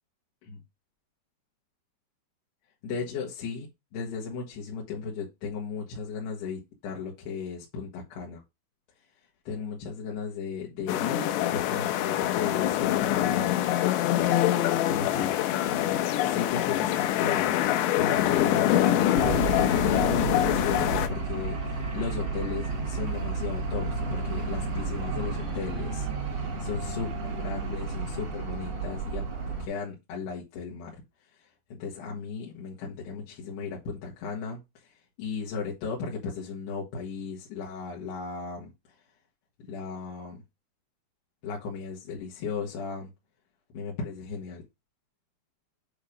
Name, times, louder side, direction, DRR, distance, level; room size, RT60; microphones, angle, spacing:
voice 1, 2.8-3.7 3.9-8.4 9.5-13.5 14.9-15.3 15.6-17.5 18.0-26.1 26.3-29.2 29.6-31.0 31.3-38.7 39.7-40.4 41.4-43.1 43.7-44.6, left 5 dB, 65° left, 3.3 m, -35 dB
sound 1, 10.9-21.1, left 12 dB, 80° left, 2.6 m, -25 dB
sound 2, 19.2-29.7, right 3 dB, 55° right, 2.8 m, -31 dB
8.8 x 3.0 x 5.0 m
omnidirectional pair, 5.6 m